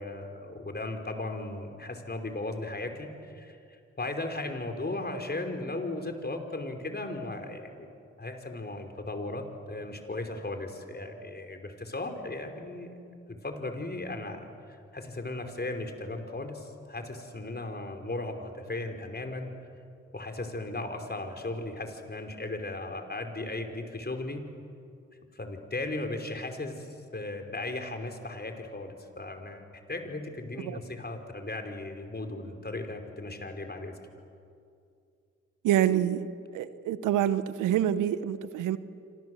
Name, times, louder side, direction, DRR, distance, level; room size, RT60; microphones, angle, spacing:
voice 1, 0.0-3.6 4.0-7.9 8.2-12.9 13.3-19.5 20.1-24.4 25.4-26.9 27.1-33.9, left 2 dB, 35° left, 5 dB, 5.3 m, -36 dB
voice 2, 35.6-36.2 36.5-38.8, right 11 dB, 85° right, 14 dB, 1.0 m, -26 dB
27.0 x 27.0 x 8.1 m, 2.4 s
supercardioid pair, 40°, 30 cm